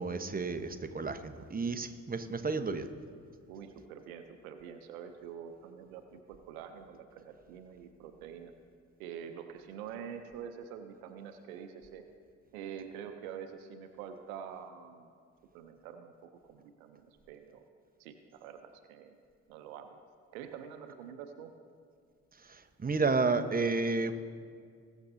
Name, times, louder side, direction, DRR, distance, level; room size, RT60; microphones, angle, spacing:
voice 1, 0.0-2.9 22.5-24.1, right 3 dB, 20° right, 9 dB, 1.0 m, -31 dB
voice 2, 3.5-8.5 9.0-12.1 12.5-15.1 15.5-17.6 18.0-19.2 19.5-20.0 20.3-21.5, right 8 dB, 85° right, 7 dB, 0.7 m, -46 dB
21.0 x 7.1 x 2.7 m, 2.1 s
hypercardioid pair, 45°, 41 cm